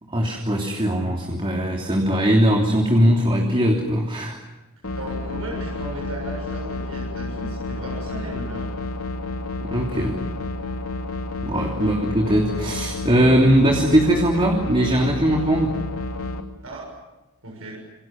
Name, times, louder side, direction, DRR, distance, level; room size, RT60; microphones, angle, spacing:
voice 1, 0.0-4.4 9.6-10.2 11.4-15.8, equal, 25° right, 0 dB, 3.2 m, -20 dB
sound 1, 4.8-16.4, left 2 dB, 90° left, 3.0 m, -30 dB
voice 2, 4.9-8.8 11.8-11.9 16.6-16.9 17.4-17.8, right 1 dB, 80° right, -1 dB, 7.0 m, -36 dB
28.0 x 27.0 x 7.6 m, 1.1 s
head